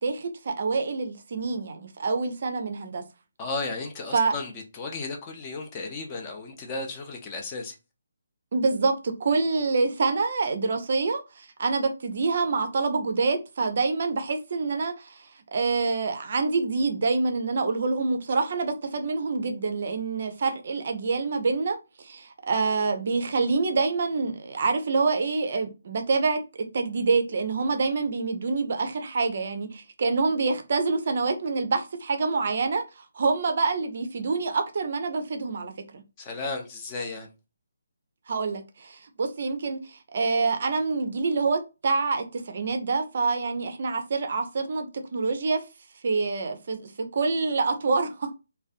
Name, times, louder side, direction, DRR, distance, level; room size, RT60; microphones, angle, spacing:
voice 1, 0.0-3.0 4.1-4.3 8.5-36.0 38.3-45.6 46.0-48.3, right 4 dB, 45° right, 0.4 m, -26 dB
voice 2, 3.4-7.7 36.2-37.3, left 3 dB, 20° left, 0.5 m, -34 dB
2.4 x 2.2 x 2.4 m
figure-of-eight pair, 145°, 0 cm